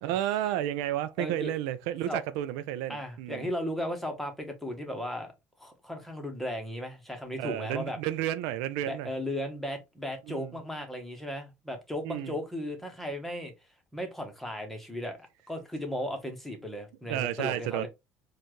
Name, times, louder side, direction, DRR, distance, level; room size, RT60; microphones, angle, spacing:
voice 1, 0.0-3.5 7.4-9.1 10.3-10.5 12.0-12.4 17.1-17.9, right 12 dB, 90° right, 0.4 m, -32 dB
voice 2, 1.2-1.5 2.1-2.2 2.9-5.3 5.6-8.0 8.9-13.5 13.9-15.2 15.5-17.9, equal, 5° left, 1.2 m, -36 dB
4.3 x 2.4 x 3.0 m
cardioid pair, 110°, 6 cm